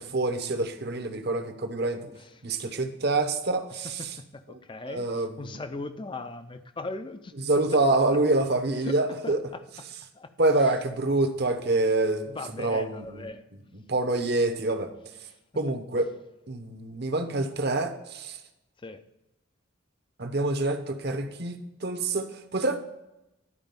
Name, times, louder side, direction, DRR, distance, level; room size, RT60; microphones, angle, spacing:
voice 1, 0.0-2.1 2.4-4.1 4.9-5.6 7.5-9.4 10.4-13.3 13.7-14.9 15.6-16.1 16.5-18.4 20.2-22.8, right 2 dB, 50° right, 7 dB, 0.9 m, -26 dB
voice 2, 4.0-7.3 8.8-9.0 9.2-9.6 10.1-10.3 12.3-13.5 18.8-19.0, left 2 dB, 25° left, 10 dB, 0.5 m, -39 dB
11.0 x 4.8 x 5.2 m, 0.95 s
head